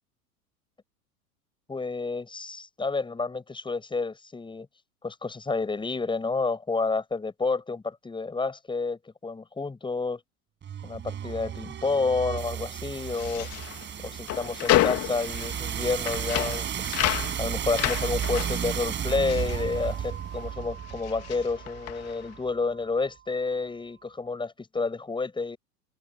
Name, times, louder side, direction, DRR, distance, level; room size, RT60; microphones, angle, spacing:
voice 1, 1.7-4.7 5.0-10.2 10.8-13.5 14.0-17.0 17.4-25.6, left 4 dB, 10° left, 7.7 m, -30 dB
sound 1, 10.6-22.5, right 9 dB, 25° right, 6.2 m, -33 dB
sound 2, 13.0-20.5 20.8-22.3, left 16 dB, 35° left, 3.3 m, -30 dB
open air
figure-of-eight pair, 90°, 46 cm